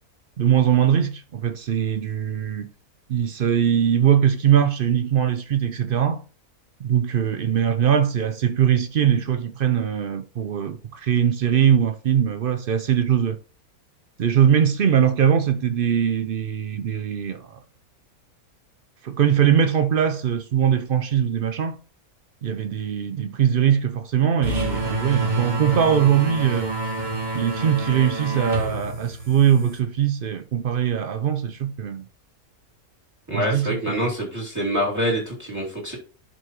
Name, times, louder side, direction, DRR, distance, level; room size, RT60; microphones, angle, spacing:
voice 1, 0.4-2.7 3.1-6.2 6.8-13.4 14.2-17.6 19.0-21.8 22.4-26.7 27.3-32.1 33.3-34.1, right 9 dB, 65° right, 0.5 m, -21 dB
sound 1, 24.4-29.8, right 2 dB, 30° right, 1.6 m, -28 dB
voice 2, 33.3-36.0, equal, 10° right, 2.5 m, -25 dB
11.0 x 5.3 x 3.0 m
omnidirectional pair, 1.6 m